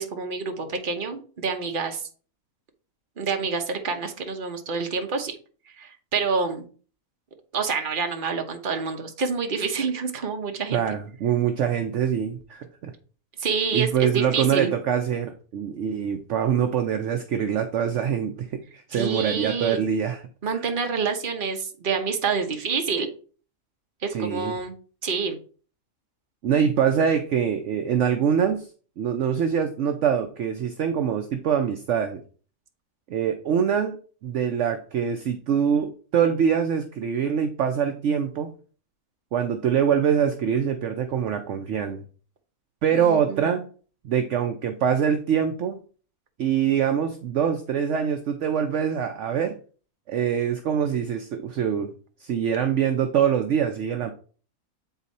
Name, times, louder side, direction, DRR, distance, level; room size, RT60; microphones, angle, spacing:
voice 1, 0.0-2.1 3.2-5.4 5.8-6.7 7.5-10.8 13.4-14.7 18.9-19.8 20.4-23.1 24.0-24.7 25.0-25.4 42.9-43.6, right 5 dB, 40° right, 4 dB, 1.1 m, -27 dB
voice 2, 10.7-12.9 13.7-20.2 24.1-24.6 26.4-28.7 29.0-32.2 33.1-34.0 34.2-38.5 39.3-42.0 42.8-43.6 44.0-45.8 46.4-49.6 50.1-51.9 52.2-54.1, right 8 dB, 65° right, 7 dB, 0.9 m, -24 dB
8.1 x 4.0 x 4.1 m, 0.40 s
omnidirectional pair, 1.5 m